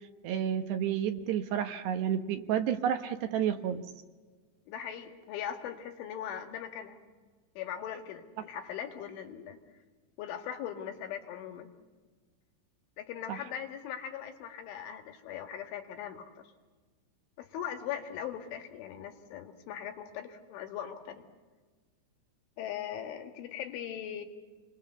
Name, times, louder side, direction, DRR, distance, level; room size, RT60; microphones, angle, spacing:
voice 1, 0.0-3.9 13.3-13.4, right 9 dB, 70° right, 7 dB, 3.0 m, -31 dB
voice 2, 4.7-7.0 7.6-9.6 10.2-11.7 13.0-16.4 17.4-21.2 22.6-24.2, left 9 dB, 80° left, 5 dB, 4.3 m, -40 dB
29.0 x 22.5 x 6.9 m, 1.4 s
omnidirectional pair, 5.5 m